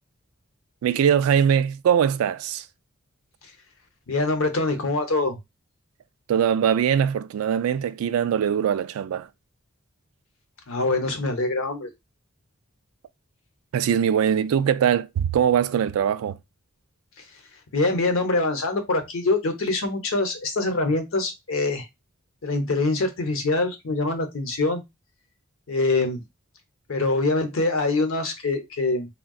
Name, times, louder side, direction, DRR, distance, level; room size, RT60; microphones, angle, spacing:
voice 1, 0.8-2.6 6.3-9.3 13.7-16.4, right 8 dB, 80° right, 0.3 m, -22 dB
voice 2, 4.1-5.4 10.7-11.9 17.7-21.8 22.4-24.8 25.7-26.2 26.9-29.1, left 2 dB, 70° left, 0.7 m, -24 dB
3.6 x 2.2 x 2.3 m
head